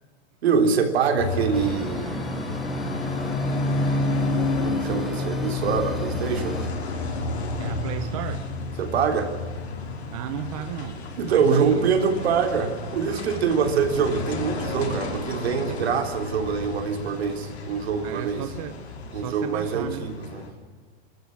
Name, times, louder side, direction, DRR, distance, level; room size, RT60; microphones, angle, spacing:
voice 1, 0.4-2.2 4.6-6.6 8.8-9.3 11.2-18.4 19.1-20.5, right 6 dB, 70° right, 6 dB, 3.6 m, -24 dB
sound 1, 1.2-20.5, left 2 dB, 70° left, 5.5 m, -30 dB
sound 2, 1.5-6.7, equal, ahead, 0.7 m, -35 dB
voice 2, 7.6-8.5 10.1-11.9 18.0-18.8 19.1-20.1, right 11 dB, 30° right, 9 dB, 0.9 m, -34 dB
28.5 x 13.5 x 9.8 m, 1.5 s
supercardioid pair, 180°, 33 cm